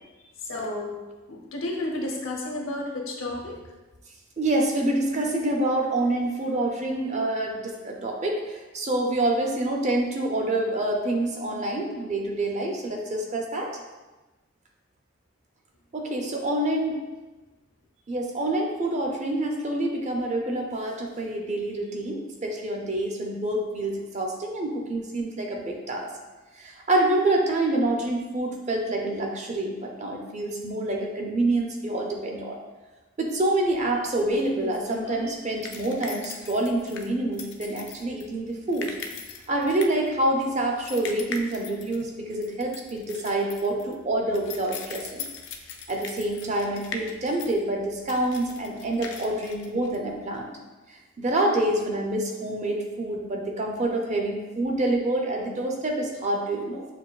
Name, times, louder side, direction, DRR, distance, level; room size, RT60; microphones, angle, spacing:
voice 1, 0.4-1.0 1.3-3.5, left 2 dB, 75° left, 0 dB, 0.7 m, -31 dB
voice 2, 4.4-13.7 15.9-17.0 18.1-26.1 26.6-32.6 33.2-38.9 39.5-45.3 45.9-50.6 51.2-56.9, right 1 dB, 35° right, 1 dB, 0.5 m, -27 dB
sound 1, 33.7-50.4, left 5 dB, 55° left, 0.4 m, -41 dB
6.4 x 2.5 x 2.3 m, 1.2 s
head